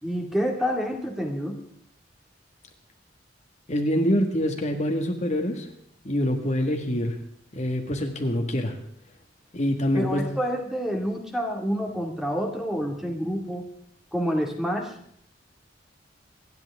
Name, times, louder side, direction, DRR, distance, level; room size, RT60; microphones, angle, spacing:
voice 1, 0.0-1.6 9.9-13.7 14.1-14.9, equal, ahead, 2 dB, 2.1 m, -28 dB
voice 2, 3.7-5.7 6.0-7.2 7.5-8.7 9.5-10.3, equal, 40° left, 4 dB, 1.7 m, -25 dB
27.5 x 10.5 x 3.6 m, 0.69 s
head